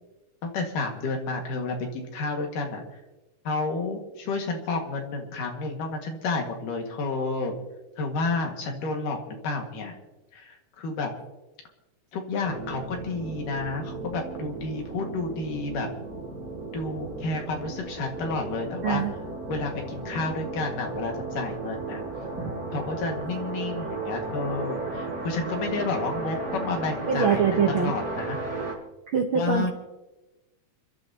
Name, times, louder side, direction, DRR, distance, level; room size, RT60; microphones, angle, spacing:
voice 1, 0.4-2.8 3.5-7.5 8.0-10.0 10.3-11.1 12.1-15.9 16.7-19.0 19.5-22.0 22.7-28.4 29.3-29.7, left 3 dB, 85° left, 2 dB, 3.4 m, -30 dB
sound 1, 12.4-28.7, right 3 dB, 25° right, 4.9 m, -35 dB
voice 2, 27.1-27.9 29.1-29.7, right 7 dB, 65° right, 2 dB, 1.3 m, -24 dB
29.0 x 12.5 x 2.8 m, 1.1 s
omnidirectional pair, 3.6 m